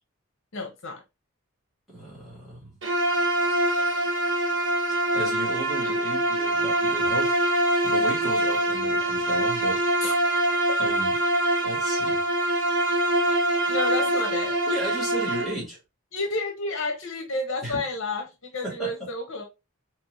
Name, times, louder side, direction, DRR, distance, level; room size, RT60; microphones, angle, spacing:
voice 1, 0.5-1.0 10.0-10.1 13.7-14.6 16.1-19.4, left 3 dB, 60° left, 0.9 m, -30 dB
voice 2, 1.9-2.8 4.9-7.4 7.8-9.8 10.8-11.1 11.6-12.2 14.1-14.2 14.7-15.8 17.6-17.8 18.6-18.9, right 1 dB, ahead, 2.2 m, -35 dB
Bowed string instrument, 2.8-15.6, right 1 dB, 60° right, 1.6 m, -24 dB
4.3 x 3.0 x 2.9 m
head